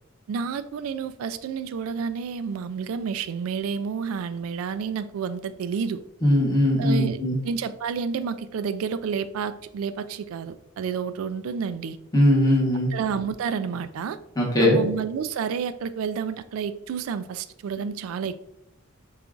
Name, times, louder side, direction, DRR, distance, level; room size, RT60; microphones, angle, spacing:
voice 1, 0.3-6.0 6.8-7.2 7.4-12.0 12.9-14.2 14.6-18.4, right 6 dB, 90° right, 13 dB, 0.3 m, -30 dB
voice 2, 6.2-7.4 12.1-12.9 14.4-14.8, left 1 dB, 20° left, -4 dB, 1.1 m, -20 dB
6.7 x 2.4 x 2.4 m, 0.80 s
head